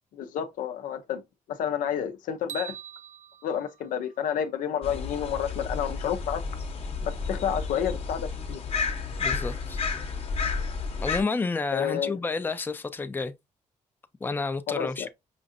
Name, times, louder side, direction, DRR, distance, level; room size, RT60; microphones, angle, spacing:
voice 1, 0.1-1.2 1.5-2.8 3.4-6.4 7.1-8.6 11.7-12.2 14.7-15.1, left 9 dB, 90° left, 0.6 m, -30 dB
sound 1, 2.5-4.8, right 10 dB, 65° right, 0.6 m, -43 dB
sound 2, 4.8-11.2, left 4 dB, 50° left, 0.8 m, -31 dB
voice 2, 9.2-9.8 11.0-13.3 14.2-15.1, left 4 dB, 15° left, 0.4 m, -30 dB
5.1 x 2.5 x 2.5 m
cardioid pair, 105°, 13 cm